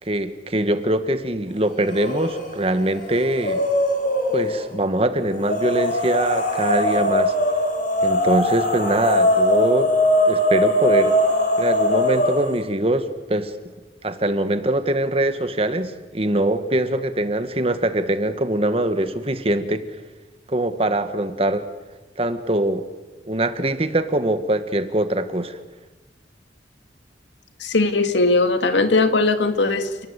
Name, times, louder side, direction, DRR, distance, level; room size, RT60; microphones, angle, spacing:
voice 1, 0.0-3.6 4.3-7.3 8.0-9.9 10.3-11.2 11.6-13.5 14.0-19.8 20.5-21.7 22.2-22.8 23.3-25.6, right 1 dB, 30° right, 10 dB, 1.6 m, -23 dB
sound 1, 1.9-2.5 2.8-4.6 5.4-12.6, left 1 dB, 50° left, 7.1 m, -21 dB
voice 2, 27.6-30.1, left 3 dB, 80° left, 8 dB, 2.2 m, -19 dB
29.5 x 19.5 x 8.2 m, 1.2 s
head